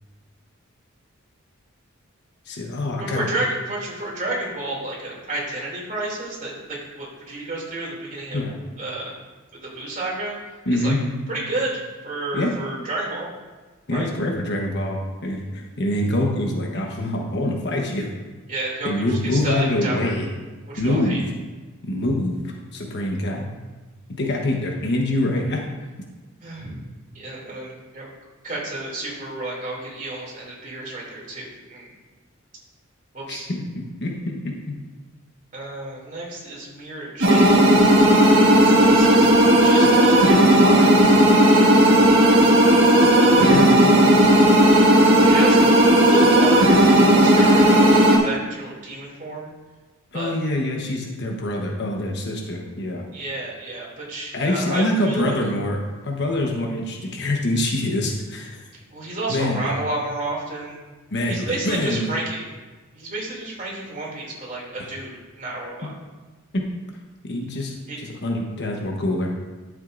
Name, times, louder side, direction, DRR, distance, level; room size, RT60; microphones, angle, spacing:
voice 1, 2.5-3.2 8.3-8.5 10.7-11.0 12.3-12.5 13.9-18.1 18.8-20.3 20.8-21.2 21.8-23.4 24.2-25.6 33.3-33.6 34.0-34.7 43.3-43.8 50.1-53.0 54.3-55.8 56.0-58.6 59.3-59.7 61.1-62.1 65.8-65.9 66.5-66.6 67.2-69.3, left 1 dB, 55° left, 0 dB, 1.1 m, -25 dB
voice 2, 3.0-8.4 8.8-9.1 9.5-10.3 10.7-10.9 11.3-13.3 13.9-14.1 18.5-20.1 20.7-21.2 26.4-26.8 27.1-28.1 28.4-31.9 33.1-33.5 35.5-37.8 38.5-39.3 39.6-40.9 45.1-49.5 50.1-50.3 53.1-55.3 58.9-60.8 61.3-62.4 62.9-65.9 67.9-68.0, right 2 dB, 40° right, -4 dB, 2.7 m, -31 dB
sound 1, 37.2-48.2, right 1 dB, 60° right, 1.6 m, -14 dB
12.0 x 7.2 x 2.6 m, 1.3 s
head